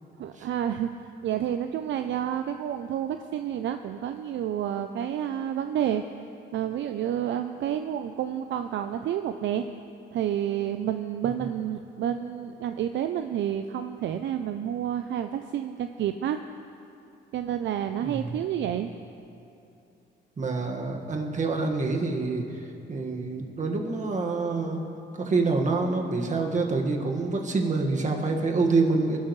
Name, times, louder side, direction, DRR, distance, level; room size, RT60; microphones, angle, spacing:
voice 1, 0.2-0.9 1.2-6.0 6.5-9.6 10.1-16.4 17.3-18.9, right 10 dB, 65° right, 8 dB, 0.5 m, -29 dB
voice 2, 18.0-18.4 20.4-22.6 22.9-24.8 25.1-29.2, right 3 dB, 40° right, 2 dB, 1.7 m, -26 dB
22.5 x 12.0 x 3.2 m, 2.7 s
cardioid pair, 90°, 20 cm